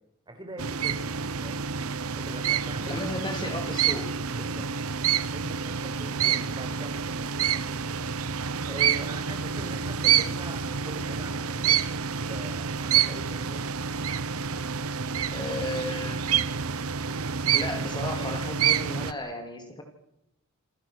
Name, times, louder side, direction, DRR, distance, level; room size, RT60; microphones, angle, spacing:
voice 1, 0.3-1.1 1.4-1.7 2.1-3.2 4.3-4.7 5.3-7.9 8.6-13.7, right 1 dB, 20° right, 4 dB, 5.1 m, -43 dB
sound 1, 0.6-19.1, right 8 dB, 90° right, 0.9 m, -28 dB
voice 2, 2.8-4.1 4.5-4.6 6.2-6.4 15.3-16.4 17.5-19.8, left 1 dB, 20° left, 4 dB, 3.5 m, -34 dB
28.5 x 18.5 x 6.4 m, 0.84 s
head